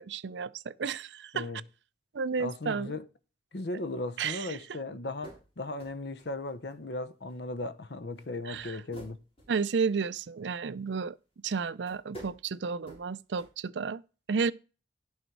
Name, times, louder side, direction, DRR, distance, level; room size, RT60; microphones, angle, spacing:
voice 1, 0.0-1.5 2.1-3.0 4.2-4.6 8.4-8.8 9.5-11.2 11.4-14.0 14.3-14.5, right 5 dB, 85° right, 0.5 m, -32 dB
voice 2, 2.4-3.1 3.5-9.2, left 2 dB, 70° left, 0.8 m, -37 dB
sound 1, 5.2-5.5 5.8-7.0 7.3-7.4 8.2-8.3 8.5-10.2 11.5-11.6 11.9-12.4 12.8-13.1 13.4-13.5, right 1 dB, 35° left, 3.5 m, -49 dB
11.0 x 6.5 x 4.6 m
head